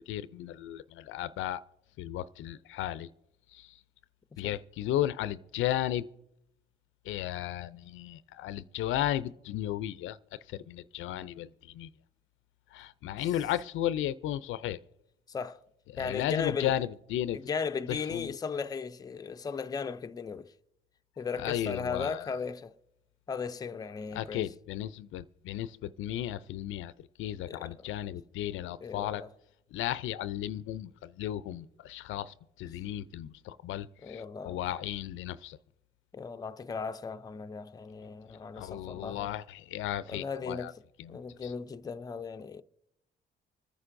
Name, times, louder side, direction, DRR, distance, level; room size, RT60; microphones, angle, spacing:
voice 1, 0.1-1.6 2.0-3.1 3.6-3.7 4.4-6.1 7.1-10.2 10.5-11.5 11.7-11.9 12.7-14.8 15.9-17.4 18.1-18.3 21.4-22.2 24.1-26.9 27.2-29.2 29.7-35.6 38.6-40.7 41.0-41.1 41.4-41.5, left 12 dB, 80° left, 0.4 m, -34 dB
voice 2, 15.3-15.6 16.0-16.8 17.3-20.5 21.2-22.7 23.3-24.5 27.5-27.9 28.8-29.3 34.0-34.6 36.1-39.3 40.1-40.8 41.1-42.6, left 5 dB, 20° left, 0.4 m, -37 dB
25.5 x 9.7 x 2.6 m
cardioid pair, 90°, 20 cm